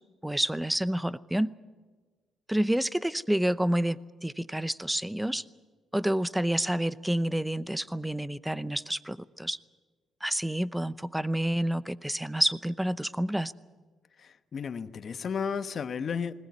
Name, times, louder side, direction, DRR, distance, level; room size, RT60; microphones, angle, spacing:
voice 1, 0.2-1.5 2.5-5.4 5.9-9.6 10.2-13.5, right 1 dB, 5° right, 16 dB, 0.7 m, -29 dB
voice 2, 14.2-16.3, left 6 dB, 50° left, 11 dB, 1.0 m, -33 dB
20.5 x 18.5 x 9.5 m, 1.4 s
cardioid pair, 90°, 0 cm